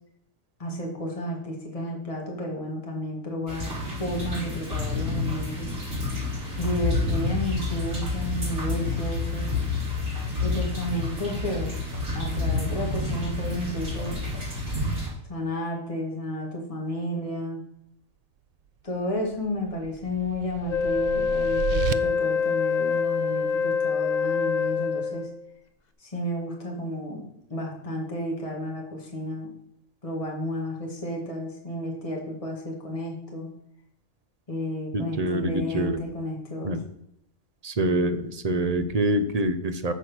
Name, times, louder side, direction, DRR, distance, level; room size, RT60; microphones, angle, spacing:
voice 1, 0.6-3.7 4.0-5.7 6.6-9.5 10.4-11.8 12.1-14.2 15.3-17.6 18.8-25.3 26.0-27.2 27.5-29.5 30.0-33.5 34.5-36.7, equal, 25° left, 0 dB, 2.1 m, -32 dB
sound 1, 3.5-15.1, left 3 dB, 75° right, 4.7 m, -29 dB
sound 2, 19.1-21.9, right 9 dB, 90° right, 0.5 m, -33 dB
Wind instrument woodwind instrument, 20.7-25.4, left 6 dB, 40° left, 0.7 m, -25 dB
voice 2, 34.9-36.0 36.6-36.8 37.6-39.9, right 1 dB, 35° right, 9 dB, 0.7 m, -25 dB
13.5 x 4.8 x 6.2 m, 0.76 s
omnidirectional pair, 1.5 m